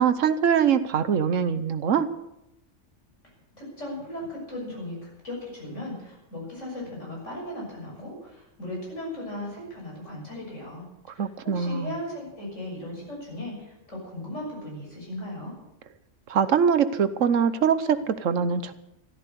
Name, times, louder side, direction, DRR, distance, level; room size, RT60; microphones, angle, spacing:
voice 1, 0.0-2.1 11.2-11.9 16.3-18.7, right 7 dB, 85° right, 12 dB, 1.3 m, -23 dB
voice 2, 3.2-15.6, left 1 dB, 80° left, -2 dB, 7.1 m, -37 dB
13.5 x 13.5 x 6.8 m, 0.88 s
omnidirectional pair, 1.3 m